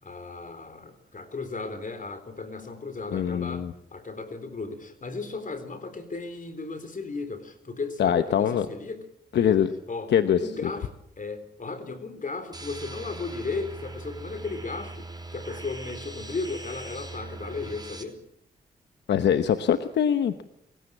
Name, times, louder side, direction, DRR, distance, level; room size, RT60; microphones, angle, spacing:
voice 1, 0.0-9.1 9.3-9.6 9.9-18.2, left 3 dB, 50° left, 10 dB, 3.8 m, -35 dB
voice 2, 3.1-3.7 8.0-8.7 9.3-9.7 10.1-10.4 19.1-20.4, left 9 dB, 80° left, 10 dB, 1.0 m, -23 dB
sound 1, 12.5-18.0, right 2 dB, 25° right, 4.7 m, -40 dB
27.0 x 16.5 x 8.7 m, 0.81 s
supercardioid pair, 50°, 18 cm